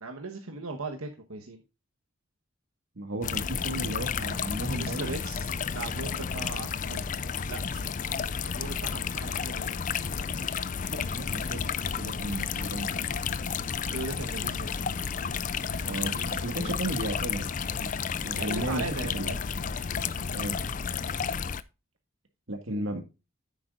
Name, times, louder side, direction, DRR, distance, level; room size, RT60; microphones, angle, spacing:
voice 1, 0.0-1.6 4.8-7.2 7.5-8.1 8.4-9.7 13.8-16.7 18.3-19.2 20.2-20.3 22.7-22.9, right 3 dB, 90° right, 4 dB, 1.2 m, -39 dB
voice 2, 3.0-5.2 10.9-13.1 15.8-17.9 18.2-18.9 19.1-19.7 20.3-20.6 22.5-23.0, right 1 dB, 70° right, 6 dB, 1.8 m, -35 dB
sound 1, 3.2-21.6, left 6 dB, 35° left, 0.4 m, -32 dB
9.9 x 8.6 x 2.5 m, 0.28 s
head